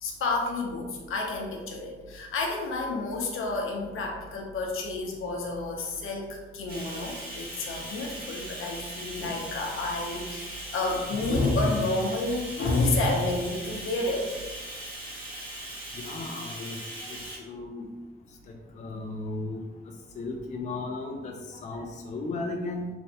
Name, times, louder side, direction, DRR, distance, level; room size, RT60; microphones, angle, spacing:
voice 1, 0.0-14.3, left 2 dB, 80° left, 0 dB, 0.7 m, -29 dB
Bathtub (filling or washing), 6.7-17.4, right 1 dB, 45° right, 1.0 m, -40 dB
voice 2, 15.9-17.9 18.7-19.7 20.1-22.9, left 2 dB, 35° left, 1 dB, 0.4 m, -35 dB
3.4 x 3.2 x 2.8 m, 1.3 s
wide cardioid pair, 150°, 21 cm